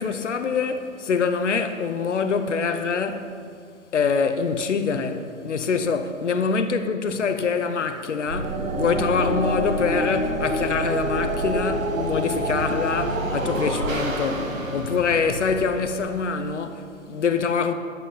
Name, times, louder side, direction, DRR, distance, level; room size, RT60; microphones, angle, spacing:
voice 1, 0.0-3.3 3.9-17.7, left 5 dB, 60° left, 0.9 m, -25 dB
sound 1, 8.3-16.4, right 1 dB, 70° right, 1.8 m, -27 dB
11.0 x 10.5 x 5.4 m
figure-of-eight pair, 125°, 41 cm